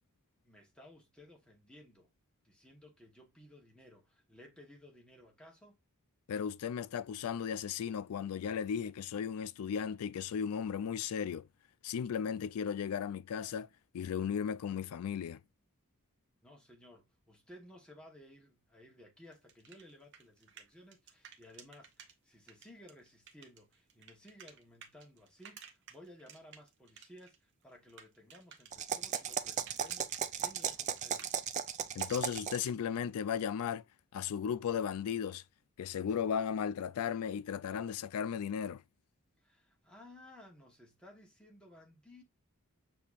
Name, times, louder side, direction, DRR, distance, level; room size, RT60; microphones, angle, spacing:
voice 1, 0.4-2.1 2.4-5.8 16.4-31.3 39.4-42.2, left 1 dB, 5° left, 1.1 m, -57 dB
voice 2, 6.3-11.5 11.8-13.7 13.9-15.4 32.0-33.8 34.1-35.4 35.8-38.8, left 7 dB, 75° left, 0.3 m, -35 dB
sound 1, 19.2-22.1 22.5-27.4 27.6-32.7, right 7 dB, 55° right, 0.9 m, -55 dB
sound 2, 28.7-32.7, right 8 dB, 35° right, 0.3 m, -36 dB
6.7 x 2.8 x 2.4 m
head